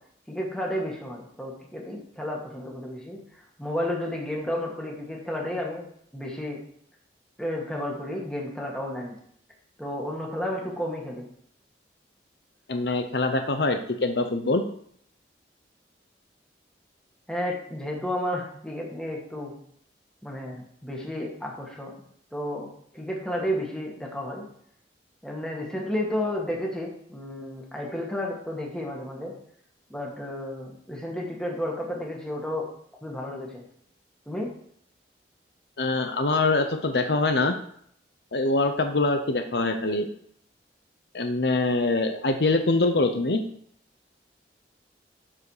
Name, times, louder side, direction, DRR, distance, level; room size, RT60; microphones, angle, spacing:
voice 1, 0.3-3.2 3.6-5.9 6.1-6.6 7.4-9.2 9.8-11.3 17.3-19.5 20.2-21.9 22.3-24.5 25.2-29.3 29.9-32.7 33.0-33.6 34.3-34.5, left 1 dB, 5° left, -2 dB, 2.1 m, -32 dB
voice 2, 12.7-14.6 35.8-37.5 38.3-40.1 41.1-43.4, left 2 dB, 65° left, 7 dB, 0.8 m, -24 dB
13.0 x 4.8 x 5.0 m, 0.67 s
head